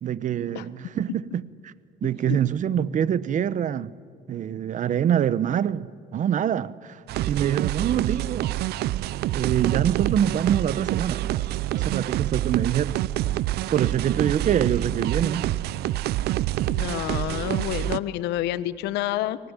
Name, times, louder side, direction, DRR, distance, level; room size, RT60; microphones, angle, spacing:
voice 1, 0.0-1.7 2.0-3.9 4.3-7.0 7.3-8.5 9.3-11.5 11.7-13.0 13.7-15.5, right 9 dB, 50° right, 0.8 m, -25 dB
sound 1, 7.1-18.0, right 15 dB, 75° right, 0.5 m, -27 dB
voice 2, 16.7-19.4, left 14 dB, 85° left, 0.9 m, -28 dB
24.0 x 19.0 x 9.6 m
cardioid pair, 110°, 17 cm